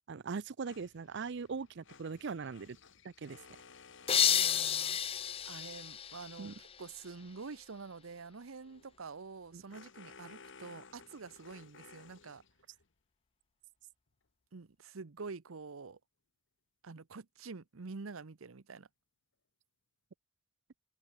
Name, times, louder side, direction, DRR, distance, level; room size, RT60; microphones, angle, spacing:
voice 1, 0.1-2.8 3.0-3.4 6.4-6.5 9.5-9.6, right 5 dB, 60° right, 0.5 m, -40 dB
sound 1, 0.7-5.6 8.6-12.9, left 5 dB, 65° left, 1.7 m, -57 dB
sound 2, 4.1-6.9, left 9 dB, 30° left, 0.5 m, -31 dB
voice 2, 4.1-12.4 14.5-16.0 16.8-18.9, right 4 dB, 85° right, 0.8 m, -47 dB
head